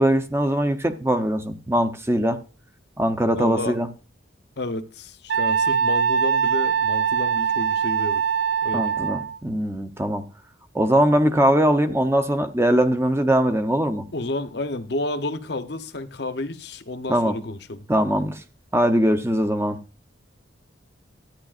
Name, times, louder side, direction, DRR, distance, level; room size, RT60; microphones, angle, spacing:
voice 1, 0.0-2.4 3.0-3.9 8.7-10.2 10.7-14.1 17.1-17.4 17.9-18.4 18.7-19.8, right 1 dB, 15° right, 0.7 m, -21 dB
voice 2, 3.2-3.8 4.6-8.2 8.6-8.9 14.1-17.8, left 2 dB, 55° left, 0.8 m, -31 dB
Wind instrument woodwind instrument, 5.3-9.4, right 7 dB, 65° right, 0.4 m, -22 dB
13.5 x 9.5 x 2.5 m
head